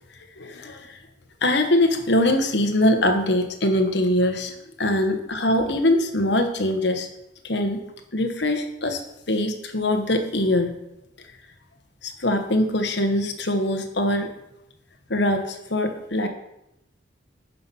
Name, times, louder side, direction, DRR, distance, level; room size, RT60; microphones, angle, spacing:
voice 1, 0.4-1.0 1.4-7.1 7.4-7.8 8.1-9.0 9.3-10.8 12.0-14.3 15.1-16.3, left 1 dB, 65° left, 5 dB, 1.2 m, -22 dB
9.6 x 5.8 x 5.6 m, 0.85 s
head